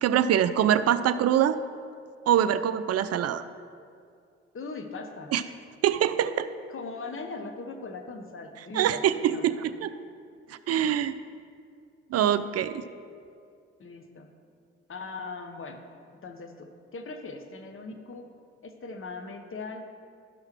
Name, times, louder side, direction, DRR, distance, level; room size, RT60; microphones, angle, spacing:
voice 1, 0.0-1.6 2.3-3.4 5.3-5.4 5.8-6.5 8.7-9.9 10.5-11.1 12.1-12.8, right 10 dB, 50° right, 13 dB, 0.5 m, -24 dB
voice 2, 4.5-5.6 6.7-9.5 13.8-14.3 14.9-15.8 16.2-18.3 18.6-19.9, left 3 dB, 40° left, 6 dB, 1.1 m, -40 dB
11.5 x 5.7 x 4.6 m, 2.3 s
hypercardioid pair, 40°, 33 cm